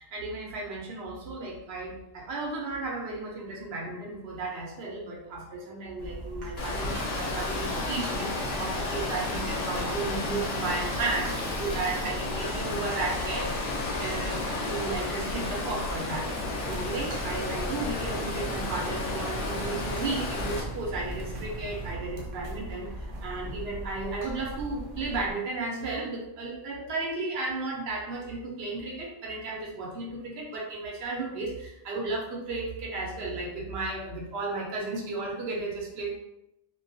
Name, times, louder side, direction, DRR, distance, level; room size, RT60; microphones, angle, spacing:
voice 1, 0.0-36.2, right 3 dB, 60° right, -2 dB, 0.8 m, -34 dB
sound 1, 6.0-25.3, right 1 dB, 85° right, 0.4 m, -39 dB
Water, 6.6-20.6, left 2 dB, 60° left, 0.7 m, -32 dB
sound 2, 16.6-21.9, right 1 dB, 35° left, 0.4 m, -41 dB
2.3 x 2.2 x 2.6 m, 0.83 s
omnidirectional pair, 1.3 m